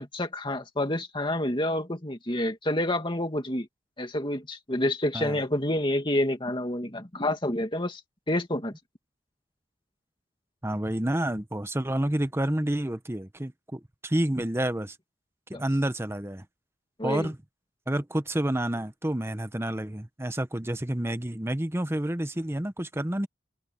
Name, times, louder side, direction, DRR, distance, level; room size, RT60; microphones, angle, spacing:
voice 1, 0.0-3.7 4.0-8.0 8.3-8.7 15.5-15.6 17.0-17.3, left 1 dB, 25° left, 2.5 m, -28 dB
voice 2, 10.6-15.0 15.5-16.4 17.0-17.4 17.9-23.3, right 1 dB, 15° right, 0.9 m, -29 dB
head